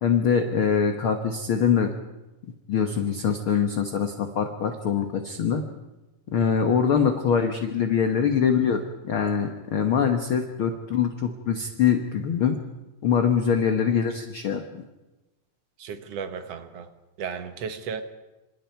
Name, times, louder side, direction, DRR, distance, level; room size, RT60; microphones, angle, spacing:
voice 1, 0.0-1.9 2.7-5.6 6.3-12.6 13.0-14.6, left 7 dB, 55° left, 5 dB, 1.5 m, -23 dB
voice 2, 15.8-16.9 17.2-18.0, right 6 dB, 60° right, 9 dB, 1.9 m, -34 dB
28.0 x 27.0 x 4.6 m, 1.1 s
omnidirectional pair, 4.1 m